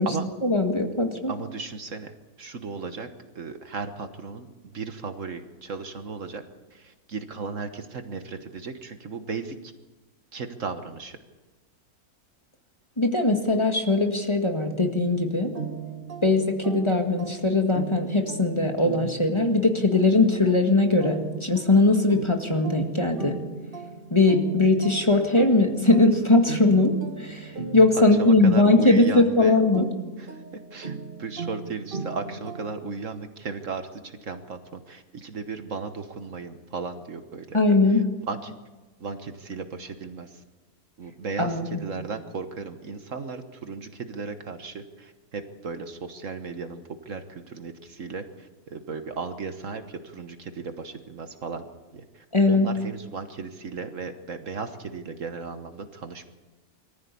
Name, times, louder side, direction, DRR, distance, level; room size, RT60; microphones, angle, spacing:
voice 1, 0.4-1.3 13.0-15.5 16.2-23.4 24.1-29.9 37.5-38.0 41.4-41.8 52.3-52.7, left 2 dB, 20° left, 3 dB, 1.9 m, -20 dB
voice 2, 1.3-2.1 2.4-3.1 3.3-6.4 6.7-9.7 10.3-11.2 27.9-29.6 30.2-30.4 30.7-37.6 37.9-38.0 38.3-38.5 39.0-40.4 41.0-51.7 51.9-56.3, right 4 dB, 55° right, 8 dB, 1.5 m, -35 dB
sound 1, 15.5-33.0, right 4 dB, 35° right, 1.7 m, -37 dB
23.5 x 14.5 x 8.4 m, 1.2 s
omnidirectional pair, 1.6 m